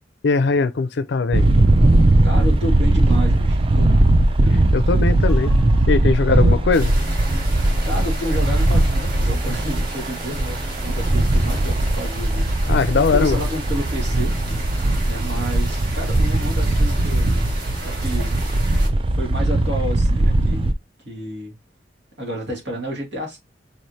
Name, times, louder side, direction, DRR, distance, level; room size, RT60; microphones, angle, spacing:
voice 1, 0.2-1.4 4.7-5.5 5.9-6.9 12.7-13.4, left 4 dB, 65° left, 0.4 m, -20 dB
sound 1, 1.3-20.7, right 1 dB, 30° right, 0.4 m, -19 dB
voice 2, 2.2-3.9 7.9-12.5 13.0-14.3 15.0-17.4 17.8-18.3 19.1-20.7 21.0-21.5 22.2-23.4, equal, 75° right, 2.2 m, -30 dB
sound 2, 5.3-13.4, left 1 dB, 20° left, 0.9 m, -38 dB
sound 3, 6.7-18.9, right 2 dB, 55° right, 1.7 m, -34 dB
4.0 x 3.1 x 2.7 m
head